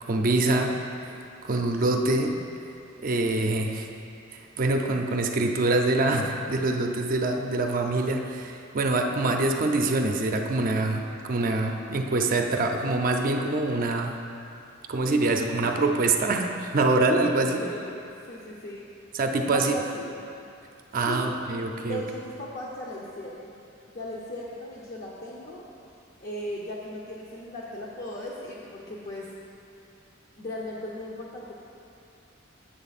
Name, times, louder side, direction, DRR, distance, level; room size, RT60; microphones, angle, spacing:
voice 1, 0.0-0.8 1.4-2.3 3.0-3.9 4.3-14.1 14.9-17.6 19.1-19.7 20.9-22.0, right 2 dB, 45° right, 3 dB, 0.5 m, -25 dB
voice 2, 17.3-18.9 19.5-20.4 21.1-21.4 21.8-23.6 23.9-25.7 26.2-29.3 30.4-31.6, left 1 dB, 50° left, -4 dB, 0.7 m, -37 dB
7.9 x 6.4 x 4.1 m, 2.6 s
head